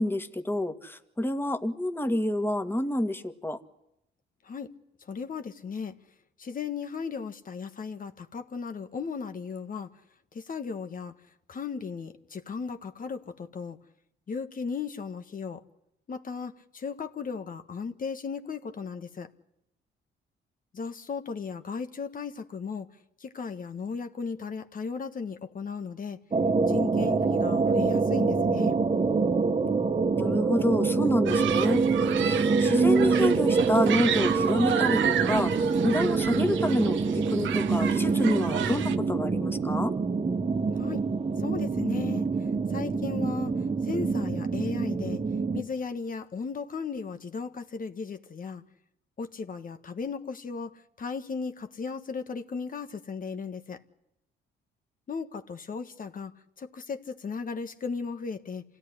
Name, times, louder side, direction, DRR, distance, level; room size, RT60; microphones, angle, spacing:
voice 1, 0.0-3.6 30.2-31.8 32.2-39.9, left 1 dB, 10° left, 7 dB, 2.0 m, -28 dB
voice 2, 5.0-5.9 6.4-9.9 10.3-11.1 11.5-13.8 14.3-15.6 16.1-19.3 20.7-22.9 23.2-26.2 26.7-28.7 40.7-41.0 41.4-43.5 43.8-45.2 45.5-48.6 49.2-53.8 55.1-58.6, left 5 dB, 45° left, 8 dB, 1.6 m, -36 dB
sound 1, 26.3-45.6, right 4 dB, 30° right, 1.7 m, -26 dB
Human group actions, 31.3-39.0, right 9 dB, 75° right, 1.3 m, -32 dB
27.0 x 17.0 x 10.0 m, 0.83 s
cardioid pair, 90°, 20 cm